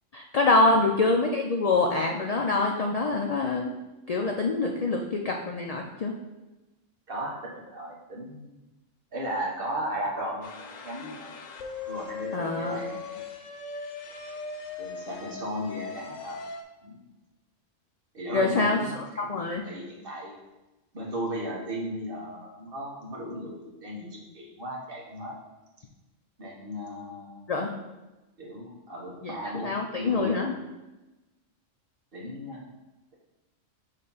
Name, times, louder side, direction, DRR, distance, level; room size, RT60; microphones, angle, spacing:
voice 1, 0.1-3.7 4.1-6.1 12.3-12.8 18.3-19.6 27.5-27.7 29.2-29.3 29.6-30.5, left 3 dB, 65° left, 2 dB, 0.3 m, -25 dB
voice 2, 7.1-8.6 9.1-11.3 11.9-13.3 14.8-16.4 16.8-17.0 18.1-20.4 20.9-25.3 26.4-27.4 28.4-30.4 32.1-32.6, equal, 45° right, -3 dB, 1.4 m, -36 dB
sound 1, 10.4-16.6, left 5 dB, 90° left, 1.1 m, -39 dB
6.6 x 3.2 x 5.4 m, 1.1 s
omnidirectional pair, 1.3 m